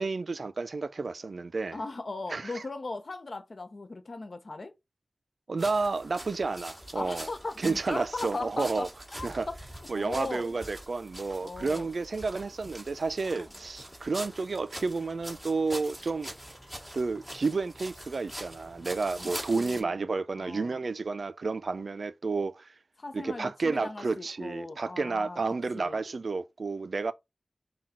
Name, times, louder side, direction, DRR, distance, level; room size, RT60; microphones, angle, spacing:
voice 1, 0.0-1.8 2.3-2.6 5.5-7.3 7.6-8.9 9.2-9.5 9.9-16.3 16.9-22.7 23.1-27.1, right 4 dB, 80° right, 0.3 m, -31 dB
voice 2, 1.7-4.7 6.9-8.9 9.2-9.6 9.9-10.5 11.4-11.9 13.2-13.5 19.5-19.9 20.4-20.8 23.0-25.4 25.7-26.0, left 3 dB, 70° left, 0.7 m, -38 dB
sound 1, 5.6-19.8, equal, 5° right, 1.8 m, -44 dB
5.8 x 2.2 x 3.6 m
wide cardioid pair, 55°, 0 cm